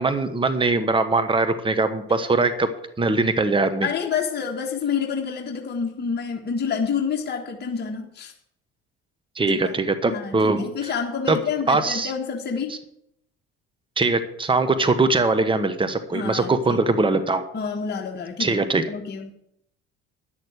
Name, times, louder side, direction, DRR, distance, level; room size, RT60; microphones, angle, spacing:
voice 1, 0.0-2.7 3.0-3.9 9.4-10.7 11.3-11.4 11.7-12.1 14.0-17.4 18.4-18.8, right 3 dB, 15° right, 9 dB, 1.2 m, -21 dB
voice 2, 3.8-8.3 9.5-9.8 10.1-12.8 16.1-16.8 17.5-18.6 18.9-19.3, left 6 dB, 35° left, 1 dB, 1.6 m, -28 dB
10.5 x 6.7 x 8.1 m, 0.73 s
supercardioid pair, 80°, 30 cm